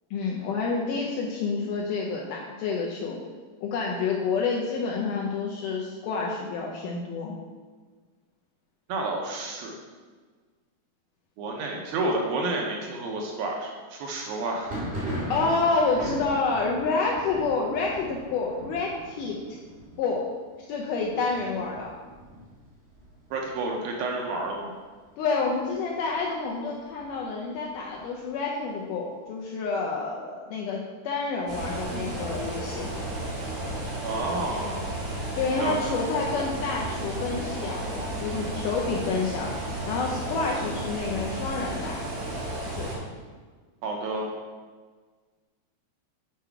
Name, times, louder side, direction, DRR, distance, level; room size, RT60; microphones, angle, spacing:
voice 1, 0.1-3.2 3.6-7.4 15.3-19.6 20.0-20.2 20.7-21.9 25.2-33.0 35.4-39.5 39.9-42.2 42.8-42.9, left 4 dB, 80° left, -2 dB, 1.9 m, -28 dB
voice 2, 8.9-9.7 11.4-14.7 23.3-24.7 34.0-34.9 35.6-35.9 43.8-44.4, right 2 dB, 80° right, 0 dB, 2.4 m, -30 dB
Thunder, 14.5-24.0 24.3-25.0 25.2-26.2 26.6-28.3, equal, 30° right, 1.1 m, -39 dB
sound 1, 31.5-43.0, right 1 dB, 50° right, 2.9 m, -33 dB
7.8 x 4.6 x 4.6 m, 1.5 s
omnidirectional pair, 4.4 m